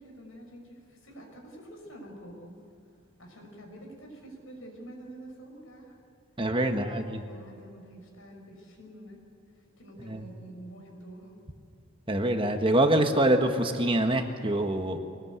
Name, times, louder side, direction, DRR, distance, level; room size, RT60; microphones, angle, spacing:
voice 1, 0.0-2.6 3.2-6.0 6.6-7.0 7.3-9.2 9.5-11.4, right 1 dB, 80° left, 2 dB, 5.8 m, -47 dB
voice 2, 6.4-7.2 10.0-10.3 12.1-15.0, right 1 dB, 25° right, 5 dB, 1.3 m, -25 dB
24.0 x 19.0 x 8.2 m, 2.4 s
head